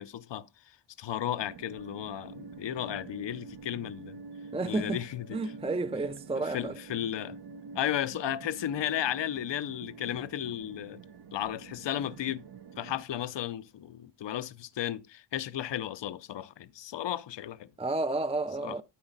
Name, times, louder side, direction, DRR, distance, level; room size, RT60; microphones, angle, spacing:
voice 1, 0.0-4.2 4.7-5.4 6.5-7.4 7.7-11.0 11.3-12.5 12.8-17.7 18.6-18.8, left 11 dB, 80° left, 0.7 m, -34 dB
sound 1, 1.4-13.0, right 5 dB, 65° right, 1.0 m, -47 dB
voice 2, 4.5-5.0 5.3-6.8 17.8-18.8, right 3 dB, 15° right, 0.5 m, -31 dB
13.0 x 4.8 x 4.0 m
cardioid pair, 70°, 43 cm